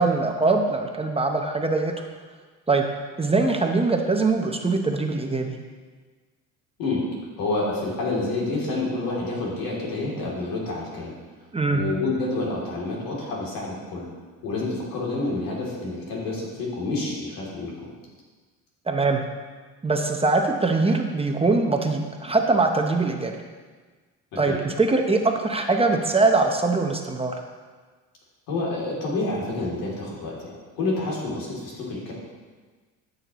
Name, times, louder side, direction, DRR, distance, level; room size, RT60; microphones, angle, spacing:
voice 1, 0.0-1.9 2.7-2.9 3.2-5.6 11.5-11.8 18.9-19.2 19.8-23.3 24.4-27.4, right 3 dB, 15° right, 3 dB, 0.8 m, -22 dB
voice 2, 7.4-11.1 11.7-14.1 14.4-17.9 24.3-24.6 28.5-32.1, left 2 dB, 80° left, -4 dB, 3.0 m, -28 dB
13.0 x 6.5 x 3.1 m, 1.4 s
cardioid pair, 95°, 34 cm